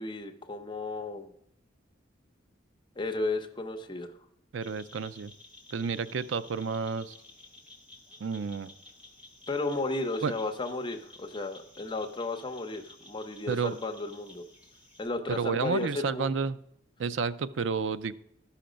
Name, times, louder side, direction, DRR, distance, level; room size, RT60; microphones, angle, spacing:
voice 1, 0.0-1.3 3.0-4.1 9.5-14.4 15.0-16.3, left 2 dB, 25° left, 5 dB, 0.8 m, -34 dB
voice 2, 4.5-5.3 5.7-7.1 8.2-8.7 10.2-10.3 13.5-13.8 15.3-16.6 17.0-18.1, right 5 dB, 85° right, 14 dB, 0.5 m, -30 dB
sound 1, 4.6-15.1, left 2 dB, 5° right, 1.8 m, -54 dB
13.0 x 5.8 x 5.1 m, 0.76 s
head